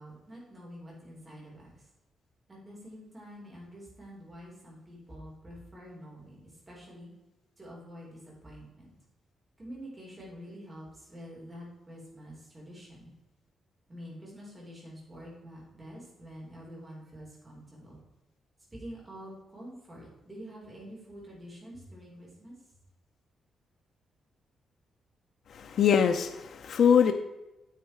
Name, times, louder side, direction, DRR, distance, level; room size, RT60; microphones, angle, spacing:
voice 1, 0.0-1.9 2.5-7.1 7.6-8.9 9.6-13.1 13.9-18.0 18.7-22.5, equal, 20° right, -4 dB, 4.2 m, -47 dB
voice 2, 25.5-27.1, left 7 dB, 60° left, 5 dB, 0.6 m, -23 dB
9.3 x 8.6 x 4.6 m, 0.99 s
wide cardioid pair, 160°, 0 cm